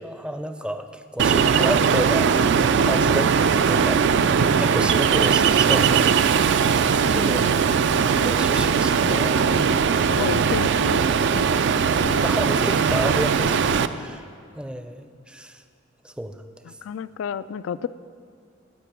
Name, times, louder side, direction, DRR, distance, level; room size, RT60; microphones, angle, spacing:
voice 1, 0.0-4.1 4.6-6.2 6.9-7.5 8.2-9.4 10.1-10.4 12.2-13.6 13.9-14.3 14.6-15.6 16.0-16.4, right 1 dB, 5° right, 8 dB, 0.5 m, -31 dB
Ocean, 1.2-13.9, right 6 dB, 65° right, 0.4 m, -20 dB
voice 2, 2.7-3.2 7.0-7.7 9.0-9.7 10.1-11.0 11.3-12.3 13.5-14.2 16.7-17.9, left 7 dB, 85° left, 16 dB, 0.3 m, -33 dB
17.0 x 5.9 x 6.0 m, 2.3 s
head